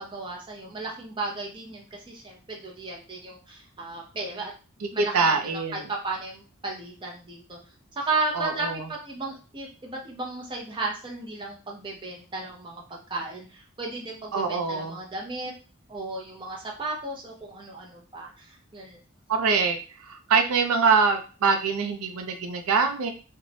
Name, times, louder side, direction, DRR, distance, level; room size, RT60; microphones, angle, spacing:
voice 1, 0.0-4.5 4.9-7.6 8.0-15.5 15.9-19.0, right 3 dB, 20° right, -2 dB, 0.6 m, -34 dB
voice 2, 5.0-5.8 8.3-8.8 14.3-15.0 19.3-19.8 20.0-23.1, right 5 dB, 85° right, 5 dB, 0.5 m, -24 dB
2.5 x 2.1 x 3.2 m, 0.36 s
head